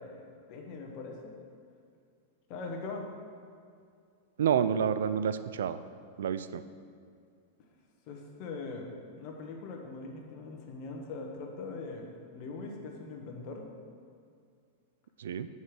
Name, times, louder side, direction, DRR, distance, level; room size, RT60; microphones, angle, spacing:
voice 1, 0.0-1.3 2.5-3.1 8.1-13.7, left 3 dB, 50° left, 2 dB, 1.2 m, -41 dB
voice 2, 4.4-5.8 6.2-6.6 15.2-15.5, right 8 dB, 80° right, 13 dB, 0.3 m, -29 dB
5.4 x 4.9 x 6.0 m, 2.3 s
hypercardioid pair, 115°, 0 cm